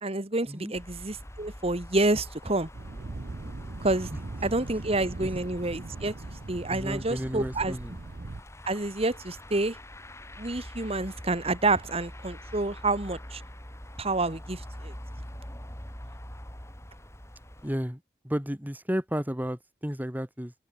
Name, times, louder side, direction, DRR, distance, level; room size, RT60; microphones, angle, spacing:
voice 1, 0.0-2.7 3.8-4.1 4.4-6.1 6.5-7.7 8.6-9.8 10.4-13.4 14.0-14.9, right 2 dB, 35° right, 1.8 m, -28 dB
sound 1, 0.7-17.8, left 1 dB, 15° left, 5.3 m, -45 dB
Thunder, 2.7-8.4, right 2 dB, 55° right, 0.8 m, -39 dB
voice 2, 4.1-4.5 4.7-4.8 5.2-5.3 6.7-8.0 17.6-20.5, equal, 10° right, 3.4 m, -33 dB
open air
head